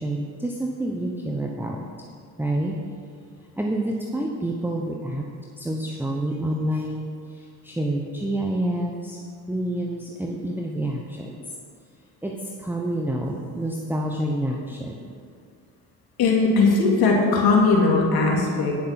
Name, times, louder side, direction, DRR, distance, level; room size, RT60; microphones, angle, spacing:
voice 1, 0.0-1.9 2.4-2.8 3.6-5.3 5.6-9.2 9.5-11.4 12.2-15.1, right 1 dB, 5° right, 0 dB, 0.9 m, -28 dB
voice 2, 16.2-18.7, left 3 dB, 60° left, -2 dB, 2.7 m, -19 dB
9.9 x 6.7 x 5.9 m, 2.3 s
supercardioid pair, 75°, 42 cm